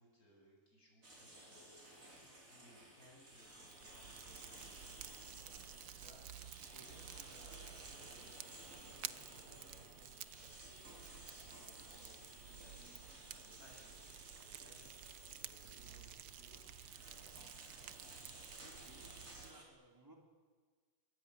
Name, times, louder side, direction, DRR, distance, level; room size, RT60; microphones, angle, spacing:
voice 1, 0.0-2.2 2.5-16.9 17.2-17.3, equal, 65° left, -1 dB, 8.7 m, -65 dB
sound 1, 1.0-19.6, right 1 dB, 55° right, 5.5 m, -57 dB
Fire, 3.3-19.5, right 10 dB, 85° right, 1.5 m, -53 dB
voice 2, 18.6-20.2, right 1 dB, 15° right, 2 dB, 3.4 m, -62 dB
23.0 x 21.5 x 10.0 m, 1.5 s
omnidirectional pair, 1.7 m